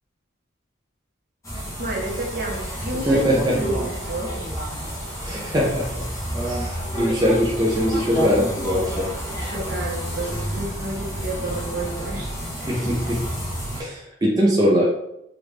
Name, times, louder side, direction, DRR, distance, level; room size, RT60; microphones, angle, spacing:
sound 1, 1.4-13.8, right 1 dB, 15° left, 0.9 m, -29 dB
voice 1, 1.8-4.3 9.5-12.3, right 2 dB, 50° right, -2 dB, 0.9 m, -30 dB
voice 2, 3.1-3.6 5.2-6.1 6.4-9.1 12.7-13.2 13.7-14.8, equal, 20° right, -5 dB, 0.5 m, -22 dB
3.3 x 2.5 x 3.2 m, 0.80 s
head